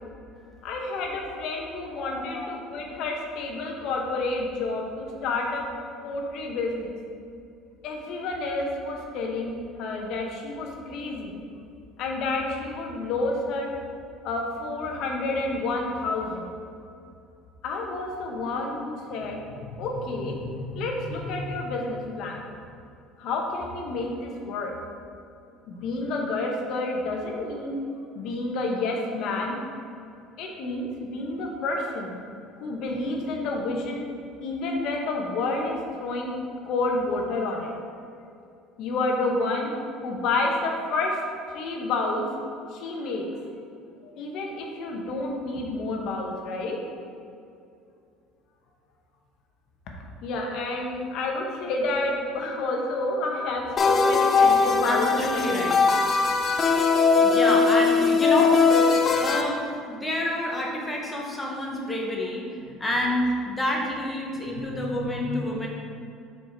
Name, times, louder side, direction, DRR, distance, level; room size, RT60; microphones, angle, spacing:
voice 1, 0.6-5.7 6.0-6.9 7.8-11.4 12.0-13.7 14.2-16.5 17.6-19.4 19.8-22.4 23.2-24.7 25.7-27.8 28.1-29.6 30.4-32.1 32.6-34.0 34.4-36.3 36.6-37.7 38.8-39.7 40.0-41.2 41.5-42.2 42.7-43.3 44.0-46.8 50.2-55.4 64.9-65.4, left 2 dB, 50° left, 0 dB, 0.9 m, -29 dB
voice 2, 1.9-2.9 54.8-55.8 56.6-56.8 57.2-65.7, left 1 dB, 10° left, -2 dB, 0.8 m, -29 dB
sound 1, 53.8-59.4, left 5 dB, 25° left, 0.4 m, -20 dB
5.2 x 4.6 x 4.5 m, 2.5 s
cardioid pair, 170°, 0 cm